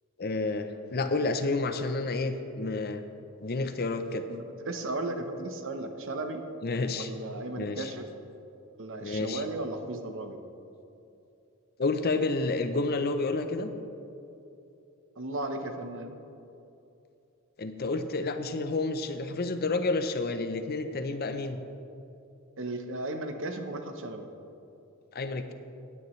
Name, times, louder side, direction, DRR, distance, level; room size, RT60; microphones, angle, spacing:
voice 1, 0.2-3.0 3.4-4.2 6.6-7.1 7.6-7.9 9.0-9.4 11.8-13.7 17.6-21.6 25.1-25.5, left 3 dB, 45° left, 8 dB, 0.7 m, -30 dB
voice 2, 4.3-6.4 6.9-8.1 8.8-10.4 15.2-16.2 22.6-24.3, right 2 dB, 60° right, 6 dB, 0.9 m, -35 dB
17.0 x 9.4 x 3.2 m, 2.8 s
head